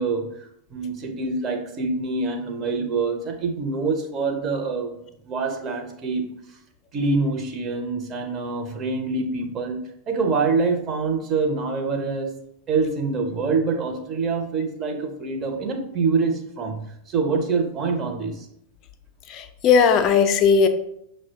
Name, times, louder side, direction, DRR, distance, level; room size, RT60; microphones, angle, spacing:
voice 1, 0.0-4.9 5.2-6.3 6.9-12.3 12.7-16.8 17.1-18.5, right 4 dB, 30° right, 4 dB, 0.6 m, -25 dB
voice 2, 19.3-20.7, left 6 dB, 35° left, 7 dB, 0.3 m, -17 dB
5.8 x 2.1 x 2.8 m, 0.76 s
figure-of-eight pair, 90°, 0 cm